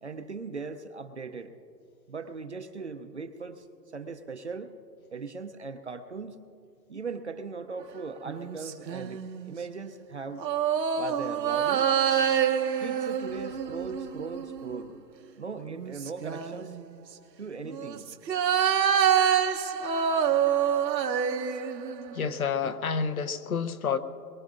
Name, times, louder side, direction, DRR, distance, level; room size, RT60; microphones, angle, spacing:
voice 1, 0.0-1.5 2.1-3.7 3.9-4.7 5.1-6.4 6.9-10.4 11.0-11.9 12.8-15.0 15.4-16.8 17.4-18.1, right 4 dB, 45° right, 8 dB, 0.6 m, -39 dB
sound 1, 8.3-9.5 10.4-14.8 15.6-16.8 17.7-22.3 22.6-22.7, right 8 dB, 85° right, 1.0 m, -27 dB
voice 2, 22.1-24.0, left 6 dB, 60° left, 12 dB, 0.8 m, -29 dB
22.5 x 22.5 x 2.5 m, 2.5 s
hypercardioid pair, 175°, 49 cm